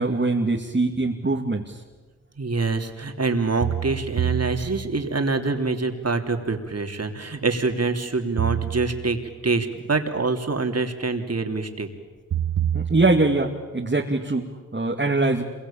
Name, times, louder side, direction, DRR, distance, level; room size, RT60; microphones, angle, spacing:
voice 1, 0.0-1.8 12.7-15.4, right 2 dB, 30° right, 0 dB, 2.4 m, -23 dB
sound 1, 1.0-1.1 3.6-5.2 8.4-9.5 12.3-13.6, right 10 dB, 70° right, 1.0 m, -28 dB
voice 2, 2.4-11.9, right 3 dB, 45° right, 5 dB, 3.2 m, -25 dB
27.0 x 23.0 x 8.8 m, 1.3 s
cardioid pair, 55°, 34 cm